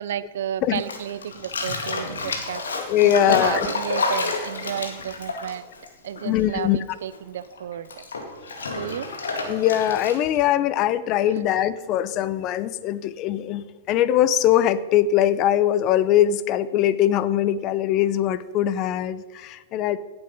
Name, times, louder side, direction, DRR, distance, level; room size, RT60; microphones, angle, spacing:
voice 1, 0.0-2.6 3.0-5.6 6.0-8.0 8.7-9.1, right 10 dB, 70° right, 16 dB, 0.7 m, -32 dB
Bathtub (filling or washing), 0.8-6.6 6.9-10.4, left 3 dB, 85° left, 2.2 m, -30 dB
voice 2, 2.9-3.7 6.2-6.8 9.5-20.0, left 11 dB, 40° left, 16 dB, 0.7 m, -21 dB
17.0 x 8.0 x 5.4 m, 1.3 s
hypercardioid pair, 110°, 0 cm